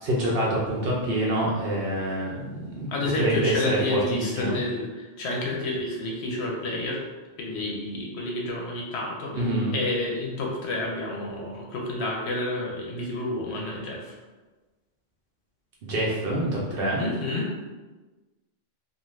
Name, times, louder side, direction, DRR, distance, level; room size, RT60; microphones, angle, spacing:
voice 1, 0.0-4.6 9.3-9.8 15.8-17.0, right 1 dB, 60° right, -4 dB, 0.7 m, -26 dB
voice 2, 2.9-7.0 7.4-9.4 9.7-14.1 17.0-17.6, left 2 dB, 65° left, -2 dB, 0.8 m, -29 dB
2.5 x 2.4 x 3.1 m, 1.2 s
omnidirectional pair, 1.3 m